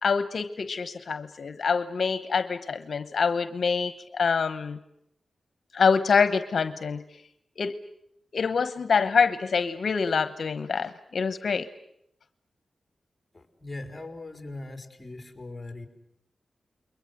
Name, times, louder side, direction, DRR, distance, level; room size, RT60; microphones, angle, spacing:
voice 1, 0.0-4.8 5.7-7.0 7.6-7.8 8.3-11.7, left 5 dB, 65° left, 11 dB, 1.0 m, -25 dB
voice 2, 13.3-15.9, left 2 dB, 15° left, 6 dB, 4.3 m, -40 dB
29.0 x 22.5 x 7.9 m, 0.75 s
wide cardioid pair, 80°, 0 cm